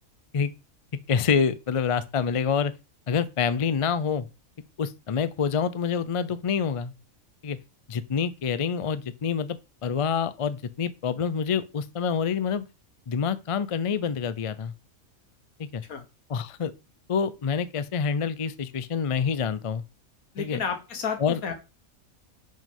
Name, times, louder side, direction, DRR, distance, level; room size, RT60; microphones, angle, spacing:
voice 1, 1.1-2.7 3.1-4.3 4.8-6.9 7.4-7.6 7.9-12.6 13.1-14.7 15.6-15.8 16.3-16.7 17.1-19.8 20.4-20.6 21.2-21.4, left 6 dB, 60° left, 0.3 m, -27 dB
voice 2, 20.4-21.5, left 6 dB, 85° left, 1.8 m, -31 dB
5.6 x 5.2 x 5.5 m
omnidirectional pair, 1.5 m